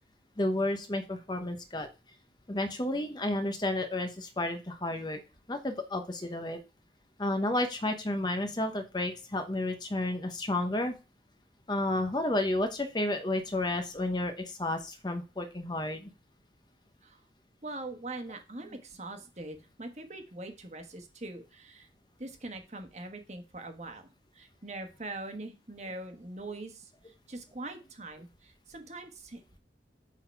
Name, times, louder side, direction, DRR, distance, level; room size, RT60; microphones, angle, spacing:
voice 1, 0.4-1.9 2.5-5.2 5.5-6.6 7.2-11.0 11.7-16.1, left 1 dB, 25° left, 6 dB, 0.9 m, -31 dB
voice 2, 17.6-21.9 22.2-29.6, right 2 dB, 40° right, 5 dB, 1.3 m, -43 dB
8.3 x 4.1 x 4.6 m, 0.29 s
head